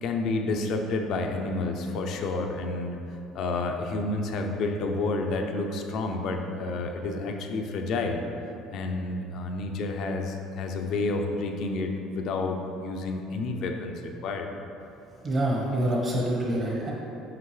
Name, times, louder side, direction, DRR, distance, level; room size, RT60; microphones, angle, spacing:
voice 1, 0.0-8.2 8.7-14.5 15.9-16.0, left 3 dB, 60° left, 3 dB, 0.6 m, -30 dB
voice 2, 15.2-16.9, right 1 dB, 45° right, -3 dB, 0.9 m, -26 dB
5.8 x 5.1 x 3.2 m, 2.8 s
supercardioid pair, 90°, 0 cm